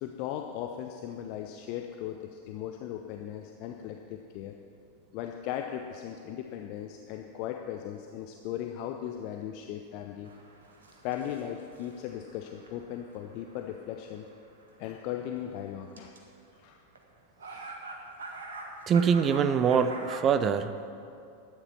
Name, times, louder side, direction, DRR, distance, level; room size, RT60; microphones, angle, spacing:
voice 1, 0.0-4.5 5.1-10.3 11.0-14.3 14.8-16.2 16.5-16.8 17.5-17.7, left 10 dB, 45° left, 4 dB, 0.7 m, -38 dB
sound 1, 10.2-15.4 16.0-16.2 17.0-17.1 17.4-20.2, right 3 dB, 65° right, 1.8 m, -45 dB
voice 2, 18.9-20.9, right 7 dB, 30° right, 12 dB, 0.6 m, -24 dB
12.5 x 9.8 x 6.2 m, 2.6 s
figure-of-eight pair, 90°, 0 cm